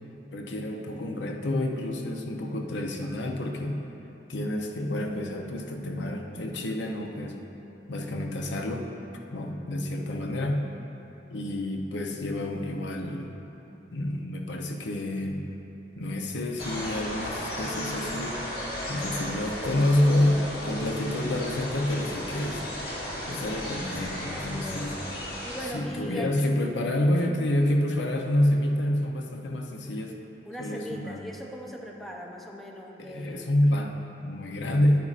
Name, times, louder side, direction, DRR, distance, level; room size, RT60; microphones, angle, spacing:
voice 1, 0.3-3.8 4.3-7.4 7.9-8.9 9.3-10.6 11.3-13.3 13.9-15.4 16.0-22.6 23.3-25.0 25.7-30.2 30.6-31.2 33.0-35.0, left 1 dB, 90° left, 2 dB, 0.7 m, -28 dB
sound 1, 16.6-25.7, left 1 dB, 60° left, 1.9 m, -35 dB
voice 2, 24.3-25.0 25.4-26.4 27.1-27.3 30.5-33.5, equal, ahead, -1 dB, 0.6 m, -40 dB
11.0 x 9.2 x 2.5 m, 2.9 s
head